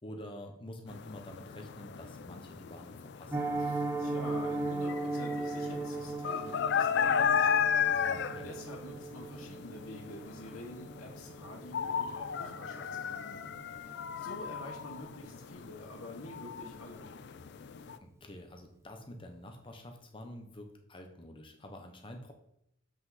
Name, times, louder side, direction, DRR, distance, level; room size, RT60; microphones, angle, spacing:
voice 1, 0.0-3.5 7.9-8.5 18.0-22.3, left 1 dB, 25° left, 4 dB, 1.0 m, -48 dB
sound 1, 0.9-18.0, left 7 dB, 50° left, 0.4 m, -34 dB
Piano, 3.3-14.2 14.5-14.7 15.0-15.2 15.5-15.8 16.1-16.2, right 2 dB, 15° right, 0.5 m, -38 dB
voice 2, 3.6-8.0 8.3-17.1, left 1 dB, 75° left, -3 dB, 1.5 m, -47 dB
7.8 x 5.2 x 4.2 m, 0.77 s
head